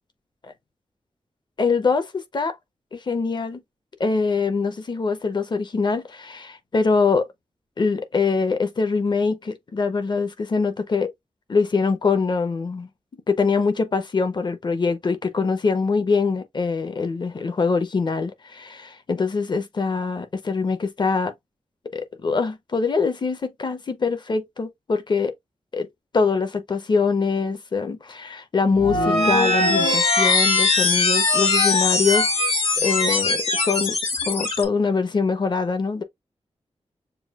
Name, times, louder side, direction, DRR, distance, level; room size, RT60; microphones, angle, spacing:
voice 1, 1.6-2.6 2.9-3.6 4.0-7.3 7.8-11.1 11.5-12.9 13.3-21.3 21.9-25.3 25.7-25.9 26.1-32.3 32.8-34.0 34.3-36.0, left 4 dB, 40° left, 0.8 m, -23 dB
sound 1, 28.7-34.6, left 3 dB, 65° left, 1.6 m, -20 dB
6.9 x 2.4 x 2.4 m
wide cardioid pair, 160°, 11 cm